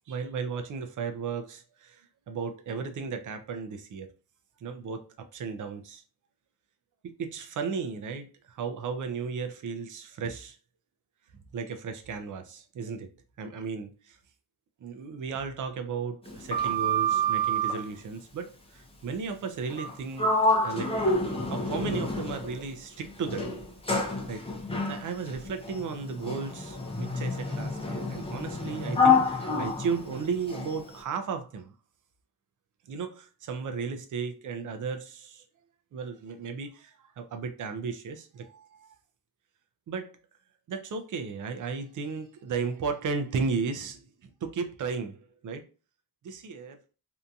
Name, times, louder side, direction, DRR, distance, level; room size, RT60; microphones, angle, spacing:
voice 1, 0.1-4.1 4.6-6.0 7.0-10.6 11.5-13.1 13.4-14.2 14.8-20.3 20.6-23.4 24.3-24.4 24.9-31.7 32.9-35.4 35.9-38.9 39.9-40.1 40.7-45.2 45.4-45.6 46.2-46.8, right 5 dB, 50° right, 0.4 m, -35 dB
Sliding door, 16.3-17.9 19.7-19.9 20.2-22.6 23.3-30.8, left 1 dB, 15° left, 0.4 m, -28 dB
2.8 x 2.6 x 2.2 m
wide cardioid pair, 175°, 41 cm